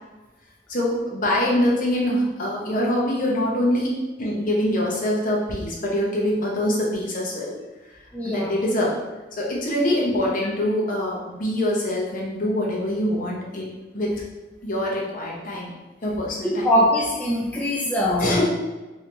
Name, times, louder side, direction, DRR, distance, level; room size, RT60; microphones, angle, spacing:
voice 1, 0.7-3.9 4.2-7.5 8.2-8.9 9.4-13.7 13.9-14.1 14.6-15.7 16.0-16.7 18.2-18.5, left 1 dB, 50° left, -3 dB, 0.8 m, -24 dB
voice 2, 8.1-8.5 16.4-18.4, equal, 10° left, -5 dB, 0.3 m, -22 dB
3.0 x 2.7 x 3.3 m, 1.2 s
head